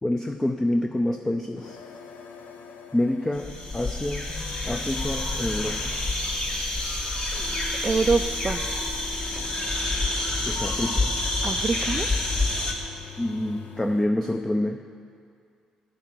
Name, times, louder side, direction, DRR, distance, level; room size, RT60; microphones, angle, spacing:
voice 1, 0.0-1.8 2.9-4.3 4.6-5.9 10.4-11.1 13.2-14.8, left 1 dB, 15° left, 5 dB, 0.6 m, -27 dB
sound 1, 1.6-14.1, left 6 dB, 65° left, 0.7 m, -44 dB
sound 2, 3.3-12.7, left 2 dB, 35° left, 1.8 m, -28 dB
voice 2, 7.8-8.8 11.4-12.2, right 4 dB, 30° right, 7 dB, 0.4 m, -26 dB
9.9 x 6.6 x 7.5 m, 2.3 s
hypercardioid pair, 45°, 3 cm